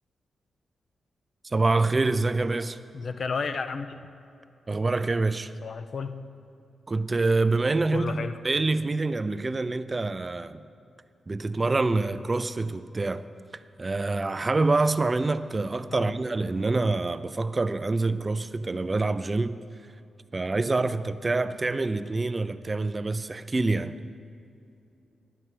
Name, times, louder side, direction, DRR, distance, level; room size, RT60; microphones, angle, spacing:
voice 1, 1.4-2.8 4.7-5.5 6.9-10.6 11.3-13.2 13.8-19.6 20.3-24.0, right 3 dB, 30° right, 0.3 m, -26 dB
voice 2, 2.9-4.1 5.6-6.2 7.9-8.4 15.9-16.1, left 5 dB, 60° left, 0.5 m, -32 dB
11.5 x 5.6 x 7.7 m
cardioid pair, 75°, 0 cm